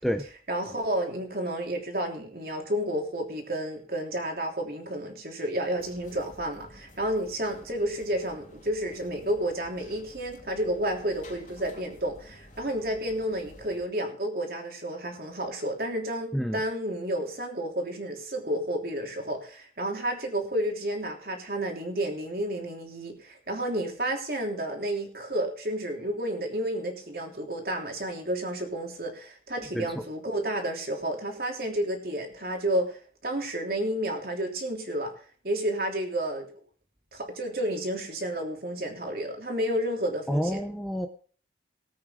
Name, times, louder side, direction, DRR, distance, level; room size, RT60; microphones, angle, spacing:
voice 1, 0.5-35.1 35.4-36.5 37.1-40.6, right 1 dB, 55° right, 2 dB, 3.2 m, -31 dB
sound 1, 5.8-13.8, left 1 dB, 45° left, 2.9 m, -51 dB
voice 2, 29.7-30.0 40.3-41.1, equal, ahead, 6 dB, 0.8 m, -28 dB
19.0 x 8.6 x 3.7 m, 0.43 s
head